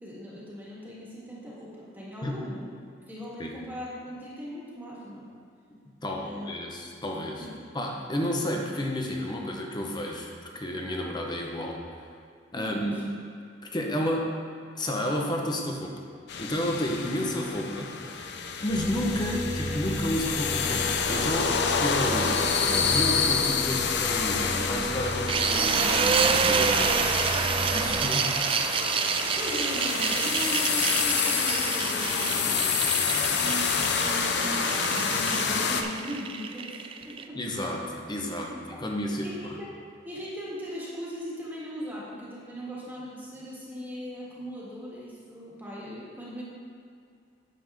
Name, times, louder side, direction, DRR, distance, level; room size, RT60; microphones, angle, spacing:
voice 1, 0.0-2.7 3.1-5.3 6.2-6.5 7.4-7.5 8.1-8.2 12.5-13.0 29.4-32.7 33.4-37.4 38.2-38.3 38.7-38.8 39.2-39.7 40.0-46.4, equal, 10° right, -7 dB, 1.7 m, -39 dB
voice 2, 6.0-7.5 7.7-11.8 12.5-13.0 13.6-14.4 14.8-15.9 16.4-17.9 18.6-27.3 27.7-28.4 37.4-38.5 38.8-39.3, left 1 dB, 25° left, 0 dB, 0.9 m, -31 dB
sound 1, 16.3-35.8, left 6 dB, 65° left, 0.6 m, -28 dB
sound 2, 18.7-28.0, left 1 dB, 85° left, 2.2 m, -35 dB
sound 3, 25.3-37.2, right 6 dB, 30° right, 0.3 m, -28 dB
9.4 x 7.0 x 3.5 m, 2.3 s
head